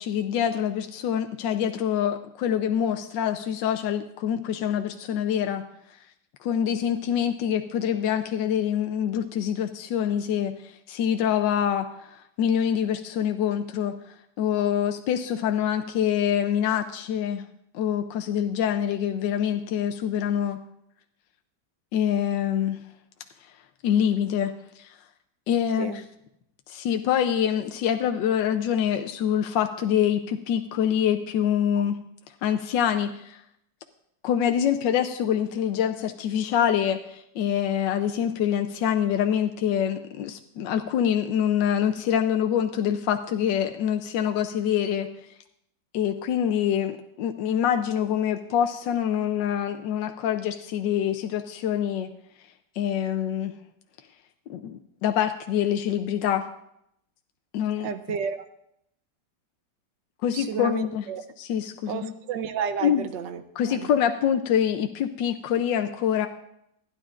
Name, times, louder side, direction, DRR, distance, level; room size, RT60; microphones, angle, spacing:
voice 1, 0.0-5.6 6.4-13.9 14.4-17.4 17.7-20.6 21.9-22.8 23.8-25.0 25.5-26.0 26.7-32.0 32.4-33.4 34.2-45.1 45.9-52.1 52.8-53.5 54.5-56.5 57.5-57.9 60.2-61.0 61.4-62.1 62.8-63.0 63.6-66.3, left 9 dB, 75° left, 6 dB, 1.3 m, -25 dB
voice 2, 57.8-58.5 60.3-61.2 61.9-63.9, right 7 dB, 75° right, 10 dB, 1.4 m, -32 dB
27.0 x 10.5 x 2.5 m, 0.78 s
omnidirectional pair, 2.1 m